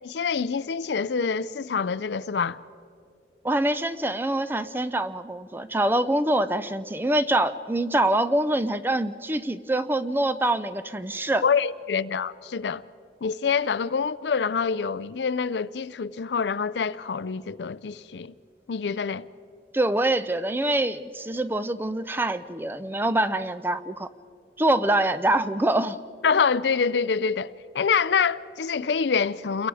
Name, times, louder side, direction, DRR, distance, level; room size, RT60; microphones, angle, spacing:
voice 1, 0.0-2.6 11.4-12.8 13.2-18.3 18.7-19.2 26.2-29.7, left 5 dB, 80° left, 0.5 m, -26 dB
voice 2, 3.4-11.4 19.7-24.1 24.6-26.0, right 1 dB, 10° right, 0.5 m, -25 dB
29.0 x 22.5 x 4.9 m
head